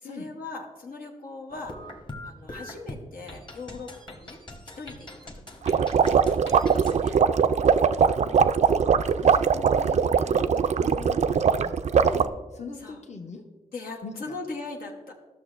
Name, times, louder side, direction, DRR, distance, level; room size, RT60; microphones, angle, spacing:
voice 1, 0.0-1.9 2.2-4.4 4.8-5.1 5.6-6.7 6.9-7.2 10.3-10.5 12.0-12.2 12.8-13.0 13.7-15.1, left 3 dB, 85° left, 0 dB, 1.0 m, -40 dB
sound 1, 1.5-7.0, left 1 dB, 35° left, 1.1 m, -42 dB
sound 2, 5.6-12.3, right 6 dB, 55° right, 0.4 m, -21 dB
voice 2, 8.6-11.7 12.0-12.3 12.5-13.4 14.0-14.3, left 4 dB, 50° left, 3 dB, 0.8 m, -41 dB
13.0 x 6.1 x 2.5 m, 1.2 s
cardioid pair, 55°, 15 cm